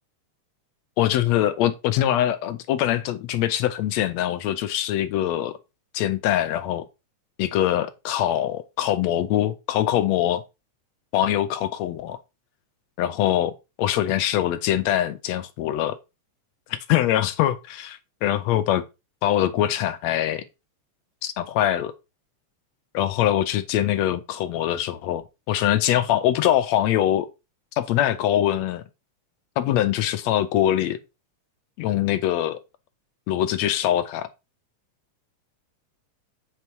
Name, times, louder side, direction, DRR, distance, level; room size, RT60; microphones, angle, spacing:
voice 1, 1.0-5.5 5.9-6.9 7.4-10.4 11.1-12.2 13.0-13.5 13.8-16.0 16.7-18.8 19.2-20.4 21.2-21.9 22.9-27.3 27.8-28.8 29.6-31.0 31.8-32.6 33.3-34.3, left 12 dB, 75° left, 1.7 m, -23 dB
8.3 x 4.3 x 4.5 m
omnidirectional pair, 3.4 m